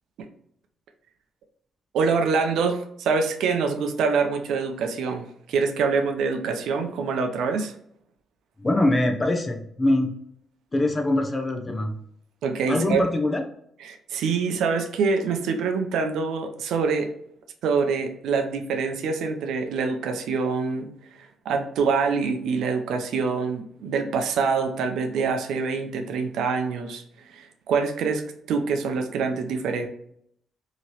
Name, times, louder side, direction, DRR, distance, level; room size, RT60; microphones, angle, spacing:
voice 1, 1.9-7.7 12.4-13.0 13.8-17.1 17.6-20.9 21.2-27.0 27.3-28.2 28.5-29.9, right 5 dB, 80° right, 6 dB, 0.5 m, -25 dB
voice 2, 8.6-10.1 10.7-12.0 12.7-13.4, left 1 dB, 25° left, 3 dB, 0.6 m, -23 dB
2.9 x 2.8 x 2.9 m, 0.70 s
cardioid pair, 90°, 0 cm